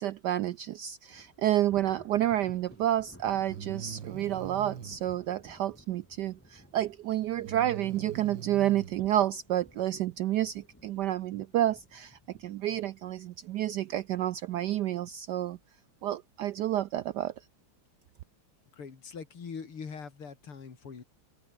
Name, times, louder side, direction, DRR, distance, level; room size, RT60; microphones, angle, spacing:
voice 1, 0.0-15.6 16.0-17.3, right 12 dB, 75° right, 0.9 m, -30 dB
Thunder, 1.1-14.4 14.8-15.1 15.5-15.6 16.5-17.0, equal, 5° left, 7.5 m, -56 dB
Breathing, 2.6-2.7 3.5-5.0 7.4-8.9, right 8 dB, 60° right, 2.2 m, -42 dB
voice 2, 18.7-21.0, left 5 dB, 90° left, 3.9 m, -42 dB
omnidirectional pair, 2.3 m